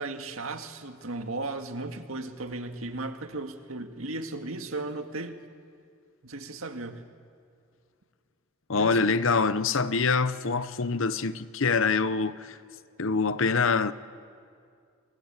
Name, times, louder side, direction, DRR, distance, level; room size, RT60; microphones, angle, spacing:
voice 1, 0.0-5.4 6.2-7.0 8.8-9.1, right 2 dB, 75° right, 1.9 m, -36 dB
voice 2, 8.7-12.6 13.0-13.9, left 4 dB, 70° left, 0.8 m, -25 dB
29.0 x 20.5 x 8.9 m
head